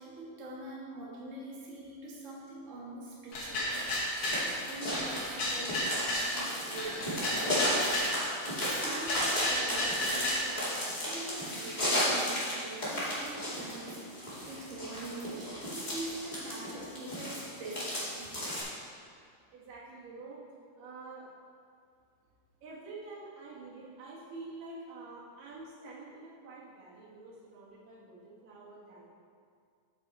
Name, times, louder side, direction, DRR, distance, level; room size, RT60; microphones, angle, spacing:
voice 1, 0.0-3.8 4.7-8.0 8.6-18.3, right 2 dB, 45° right, -5 dB, 0.9 m, -44 dB
sound 1, 3.3-4.5 4.9-6.3 6.8-8.1 8.6-10.5, left 1 dB, 50° left, 1.8 m, -33 dB
sound 2, 3.7-18.6, equal, 15° left, 1.8 m, -34 dB
voice 2, 19.5-20.4 20.8-21.3 22.6-29.0, right 3 dB, 80° right, -6 dB, 3.3 m, -47 dB
8.4 x 6.9 x 4.1 m, 2.2 s
omnidirectional pair, 3.8 m